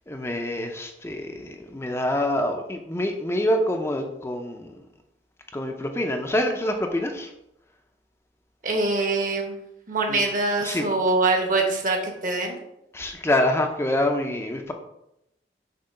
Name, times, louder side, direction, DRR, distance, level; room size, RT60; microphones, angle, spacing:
voice 1, 0.1-4.8 5.5-7.3 10.1-10.2 10.6-10.9 12.9-14.7, left 1 dB, 15° left, 3 dB, 0.5 m, -26 dB
voice 2, 8.6-9.6 9.9-12.6, right 3 dB, 50° right, 2 dB, 1.2 m, -24 dB
6.6 x 3.0 x 5.6 m, 0.82 s
head